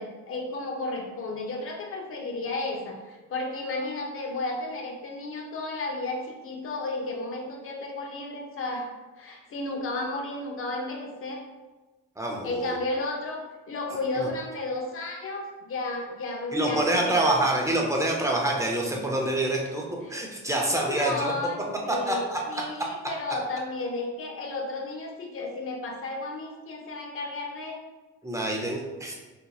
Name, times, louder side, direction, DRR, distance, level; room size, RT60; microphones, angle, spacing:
voice 1, 0.0-8.9 9.2-11.4 12.4-17.4 20.0-20.2 20.5-27.8, left 2 dB, 45° left, 1 dB, 0.7 m, -33 dB
voice 2, 12.2-12.8 16.5-19.8 20.1-21.3 22.1-22.6 28.2-29.2, right 1 dB, 10° right, -1 dB, 0.7 m, -26 dB
4.2 x 2.8 x 2.3 m, 1.2 s
cardioid pair, 90°, 30 cm